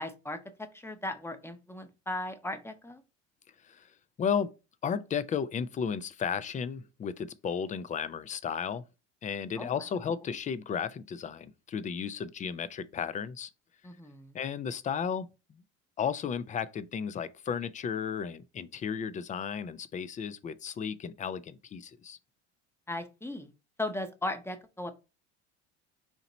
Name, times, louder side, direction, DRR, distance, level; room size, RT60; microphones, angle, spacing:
voice 1, 0.0-3.0 9.6-9.7 13.8-14.4 22.9-23.5 23.8-24.9, left 1 dB, 5° left, 0.7 m, -37 dB
voice 2, 4.2-4.5 4.8-8.8 9.2-13.5 14.3-15.6 16.0-22.2, left 7 dB, 20° left, 0.4 m, -34 dB
4.3 x 2.9 x 3.9 m
hypercardioid pair, 85°, 35 cm